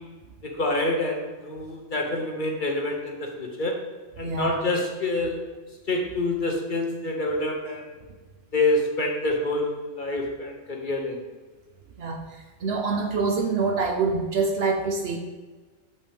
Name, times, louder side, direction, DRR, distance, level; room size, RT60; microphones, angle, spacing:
voice 1, 0.4-3.8 4.2-5.4 5.9-7.9 8.5-11.2, left 2 dB, 45° left, 1 dB, 0.9 m, -27 dB
voice 2, 4.2-4.6 12.0-15.2, right 4 dB, 60° right, 4 dB, 0.8 m, -26 dB
7.2 x 5.4 x 3.4 m, 1.3 s
omnidirectional pair, 1.3 m